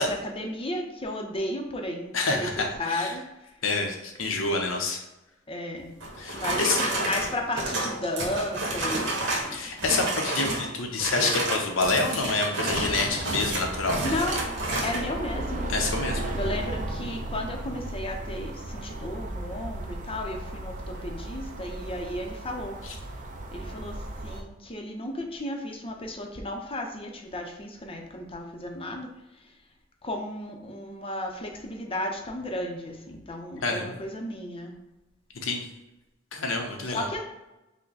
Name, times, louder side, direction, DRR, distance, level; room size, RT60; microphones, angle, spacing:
voice 1, 0.0-3.5 5.5-5.9 6.3-9.7 14.0-14.4 14.8-15.7 16.3-23.1 23.5-29.1 30.0-34.8 36.9-37.2, left 1 dB, 30° left, 2 dB, 0.6 m, -34 dB
voice 2, 2.1-3.1 3.6-5.0 6.2-6.8 9.5-14.0 15.7-16.3 22.8-22.9 33.6-33.9 35.3-35.7 36.3-37.1, left 3 dB, 80° left, 3 dB, 0.8 m, -27 dB
sound 1, 6.0-9.5 9.8-10.6 11.0-15.0, right 2 dB, 65° right, 1.4 m, -30 dB
sound 2, 12.7-24.4, right 1 dB, 40° right, 0.5 m, -35 dB
5.6 x 2.2 x 4.0 m, 0.97 s
head